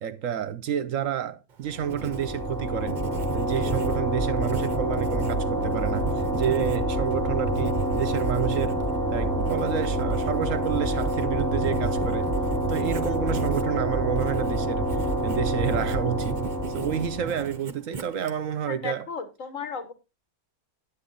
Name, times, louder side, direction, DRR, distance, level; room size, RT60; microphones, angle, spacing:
voice 1, 0.0-3.0 3.3-8.8 9.1-12.3 12.7-14.9 15.2-19.1, right 9 dB, 65° right, 1.0 m, -29 dB
Writing, 1.5-18.7, right 5 dB, 40° right, 0.7 m, -40 dB
sound 1, 1.7-17.6, right 1 dB, 15° right, 1.3 m, -27 dB
voice 2, 18.7-19.9, left 6 dB, 55° left, 1.6 m, -35 dB
10.0 x 8.4 x 3.9 m
omnidirectional pair, 1.6 m